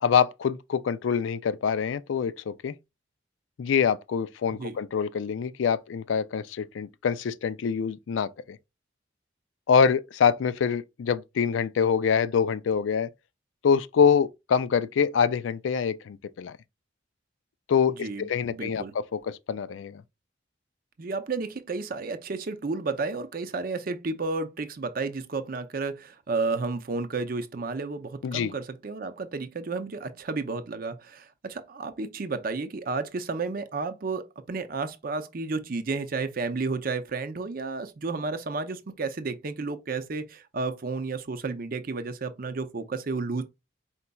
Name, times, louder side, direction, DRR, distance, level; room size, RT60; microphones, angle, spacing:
voice 1, 0.0-2.7 3.6-8.6 9.7-13.1 13.6-16.6 17.7-20.0 28.2-28.5, left 6 dB, 90° left, 0.4 m, -25 dB
voice 2, 17.9-18.9 21.0-43.4, right 3 dB, 50° right, 0.5 m, -32 dB
4.4 x 3.9 x 2.2 m
head